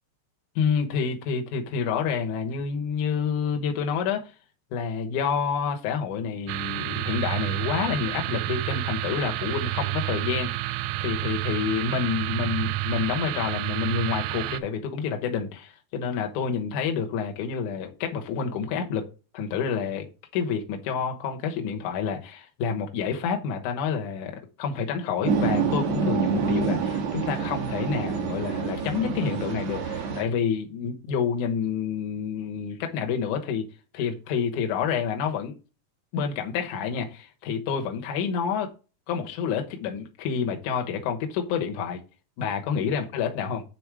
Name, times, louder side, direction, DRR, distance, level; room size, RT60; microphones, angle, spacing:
voice 1, 0.6-4.3 4.7-19.1 19.3-20.1 20.3-33.6 33.9-35.5 36.1-38.7 39.1-42.0 42.4-43.6, left 6 dB, 70° left, 3 dB, 2.0 m, -28 dB
sound 1, 6.5-14.6, right 18 dB, 85° right, 2.7 m, -29 dB
sound 2, 25.2-30.2, right 5 dB, 55° right, 2.1 m, -27 dB
8.8 x 4.2 x 4.8 m, 0.33 s
omnidirectional pair, 5.0 m